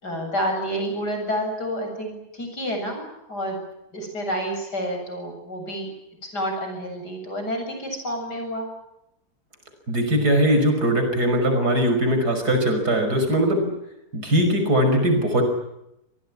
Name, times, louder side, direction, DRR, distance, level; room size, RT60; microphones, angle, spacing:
voice 1, 0.0-3.6 3.9-5.9 6.2-8.7, equal, 85° left, 3 dB, 8.3 m, -29 dB
voice 2, 9.9-13.7 14.1-15.4, equal, 75° right, 5 dB, 6.4 m, -20 dB
27.0 x 19.0 x 10.0 m, 0.84 s
omnidirectional pair, 1.7 m